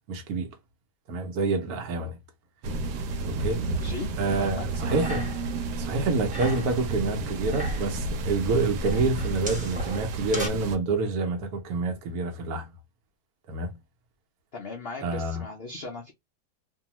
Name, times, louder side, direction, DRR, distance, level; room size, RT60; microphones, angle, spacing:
voice 1, 0.1-0.5 1.1-2.2 3.3-3.6 4.2-5.3 5.8-12.7 13.5-13.8 15.0-15.4, right 3 dB, 70° right, 1.1 m, -27 dB
sound 1, 2.6-10.8, right 2 dB, 90° right, 1.2 m, -31 dB
voice 2, 3.7-4.1 4.4-4.7 14.5-16.1, left 3 dB, 80° left, 0.5 m, -38 dB
sound 2, 4.7-5.6 5.8-6.8 7.3-8.0 8.8-10.5, right 1 dB, 5° right, 0.6 m, -38 dB
2.7 x 2.3 x 2.8 m
omnidirectional pair, 1.7 m